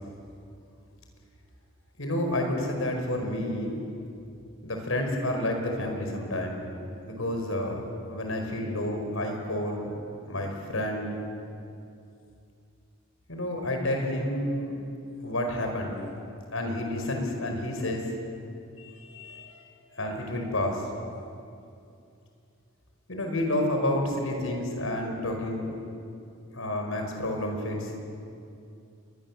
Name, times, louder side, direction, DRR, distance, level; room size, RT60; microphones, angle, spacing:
voice 1, 2.0-3.8 4.6-6.7 7.0-7.8 8.1-9.9 10.3-11.1 13.3-14.8 15.2-16.0 16.5-18.0 18.8-19.6 19.9-20.8 23.1-25.7 26.5-28.0, left 1 dB, 80° left, 3 dB, 5.0 m, -30 dB
27.5 x 22.0 x 7.4 m, 2.6 s
head